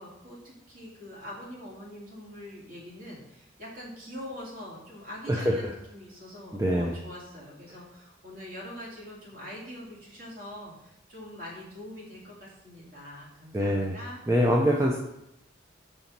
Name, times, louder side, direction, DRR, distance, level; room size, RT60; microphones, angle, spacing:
voice 1, 0.0-14.2, left 1 dB, 45° right, -5 dB, 2.3 m, -43 dB
voice 2, 6.5-6.9 13.5-13.9 14.3-15.0, equal, 15° right, -2 dB, 0.5 m, -24 dB
5.4 x 4.1 x 5.9 m, 0.82 s
head